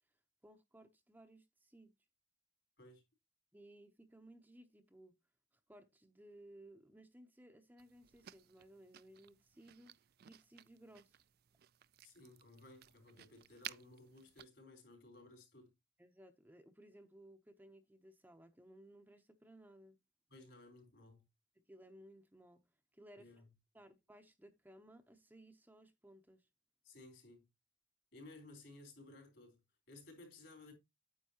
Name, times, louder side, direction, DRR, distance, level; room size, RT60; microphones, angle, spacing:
voice 1, 0.4-1.9 3.5-5.2 5.7-10.0 10.3-11.2 16.0-20.0 21.7-22.6 22.9-23.4 23.7-26.5, right 1 dB, 10° right, 0.7 m, -60 dB
sound 1, 7.8-14.5, right 12 dB, 55° right, 0.4 m, -56 dB
voice 2, 12.0-15.7 20.3-21.2 23.1-23.5 26.8-27.5 28.1-29.6 29.9-30.7, left 2 dB, 65° left, 4.0 m, -58 dB
9.3 x 7.5 x 2.8 m
head